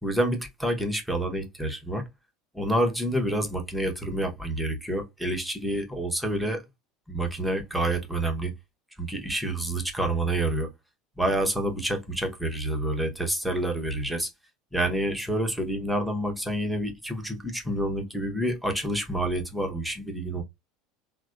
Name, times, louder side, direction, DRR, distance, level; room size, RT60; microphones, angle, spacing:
voice 1, 0.0-2.0 2.5-6.6 7.1-8.5 9.0-10.7 11.2-14.3 14.7-20.4, right 1 dB, ahead, 0.9 m, -28 dB
3.3 x 2.1 x 2.4 m
hypercardioid pair, 75°, 0 cm